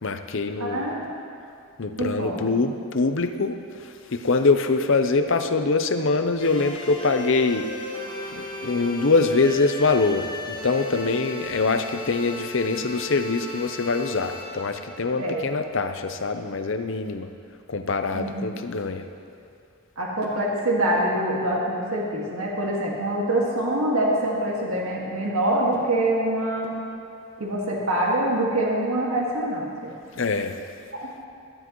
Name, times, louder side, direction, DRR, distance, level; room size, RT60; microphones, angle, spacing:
voice 1, 0.0-0.9 1.8-7.7 8.3-17.3 17.7-19.1 30.1-30.6, left 3 dB, 60° left, 8 dB, 0.6 m, -24 dB
voice 2, 0.6-1.1 2.0-2.6 15.2-15.4 18.1-18.5 20.0-26.8 27.4-29.9 30.9-31.1, right 1 dB, 75° right, -4 dB, 1.9 m, -25 dB
sound 1, 6.4-16.3, left 2 dB, 20° left, 1.4 m, -37 dB
16.5 x 12.5 x 3.1 m, 2.4 s
head